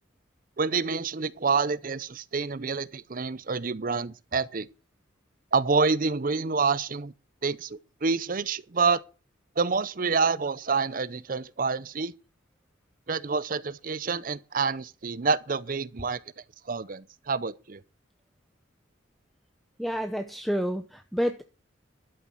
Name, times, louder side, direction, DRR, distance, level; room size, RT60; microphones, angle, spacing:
voice 1, 0.6-4.7 5.5-7.1 7.4-9.0 9.6-12.1 13.1-16.2 16.7-17.8, right 4 dB, 45° right, 0.6 m, -27 dB
voice 2, 19.8-21.4, equal, ahead, 0.7 m, -29 dB
12.0 x 7.3 x 6.3 m
head